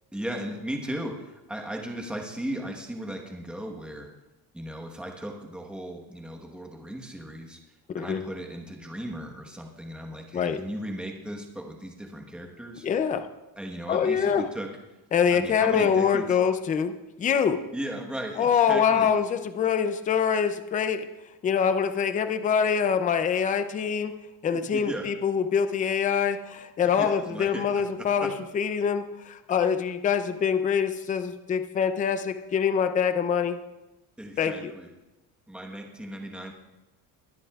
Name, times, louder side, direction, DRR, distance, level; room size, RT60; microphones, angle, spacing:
voice 1, 0.1-4.1 4.5-7.6 8.0-12.9 13.6-14.7 15.3-16.4 17.7-19.1 24.5-25.1 26.1-26.3 26.8-28.3 34.2-34.9 35.5-36.5, right 1 dB, ahead, 1 dB, 1.2 m, -36 dB
voice 2, 12.8-13.3 13.9-14.5 15.1-17.6 18.4-21.1 21.4-24.1 24.4-33.6 34.4-34.7, left 7 dB, 20° left, 9 dB, 0.4 m, -25 dB
22.0 x 10.5 x 2.4 m, 1.0 s
cardioid pair, 175°, 41 cm